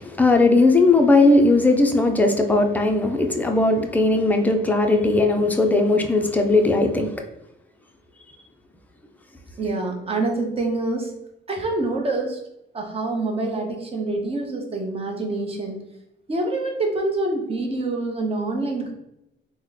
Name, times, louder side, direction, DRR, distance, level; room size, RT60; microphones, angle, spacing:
voice 1, 0.0-7.1, left 2 dB, 10° left, 3 dB, 0.5 m, -18 dB
voice 2, 9.6-11.1 11.5-12.4 12.7-15.8 16.3-18.9, right 2 dB, 30° right, 2 dB, 0.8 m, -26 dB
3.0 x 2.1 x 3.9 m, 0.86 s
cardioid pair, 90°, 20 cm